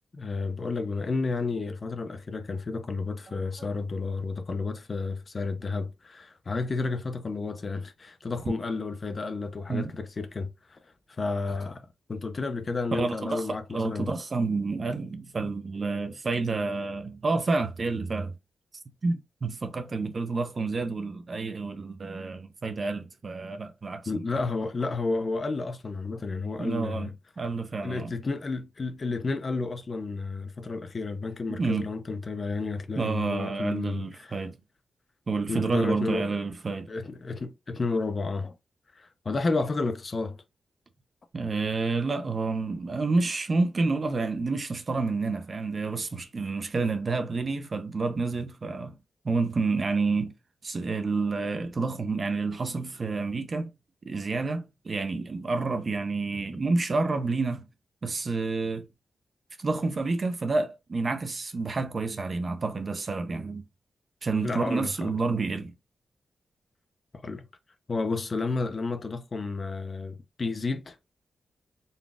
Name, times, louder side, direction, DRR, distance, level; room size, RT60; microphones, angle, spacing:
voice 1, 0.1-10.8 11.1-14.1 24.1-27.1 27.8-34.3 35.5-36.4 36.9-38.5 39.0-40.4 64.4-65.1 67.1-67.5 67.9-71.0, left 3 dB, 35° left, 0.5 m, -31 dB
voice 2, 12.9-18.3 19.0-24.2 26.6-27.1 27.4-28.1 31.5-31.9 33.0-34.6 35.3-36.9 41.3-49.0 49.2-50.3 50.6-53.7 54.0-57.7 58.0-58.9 59.6-63.6 64.2-65.7, right 3 dB, 40° right, 0.5 m, -29 dB
4.0 x 2.3 x 3.4 m
wide cardioid pair, 130°, 0 cm